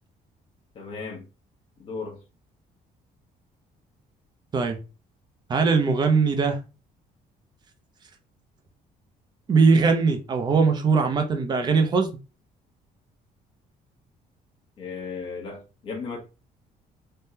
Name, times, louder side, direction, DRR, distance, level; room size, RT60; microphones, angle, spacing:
voice 1, 0.7-1.2 1.8-2.2 14.8-16.2, left 4 dB, 35° left, 0.8 m, -35 dB
voice 2, 5.5-6.6 9.5-12.1, right 4 dB, 30° right, 0.5 m, -20 dB
3.5 x 2.1 x 2.7 m
cardioid pair, 175°, 16 cm